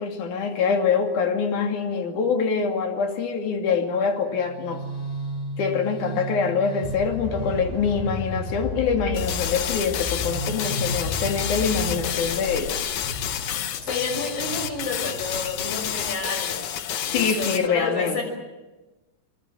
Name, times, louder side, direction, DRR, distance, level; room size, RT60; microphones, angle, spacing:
voice 1, 0.0-4.8 5.6-12.8 17.0-18.2, left 5 dB, 50° left, 4 dB, 3.6 m, -25 dB
sound 1, 4.3-16.1, left 1 dB, 65° left, 7.1 m, -33 dB
sound 2, 9.1-17.7, left 10 dB, 85° left, 1.6 m, -30 dB
voice 2, 13.8-16.6 17.0-18.2, left 3 dB, 35° left, 4 dB, 6.9 m, -30 dB
26.0 x 23.0 x 7.4 m, 1.1 s
omnidirectional pair, 4.9 m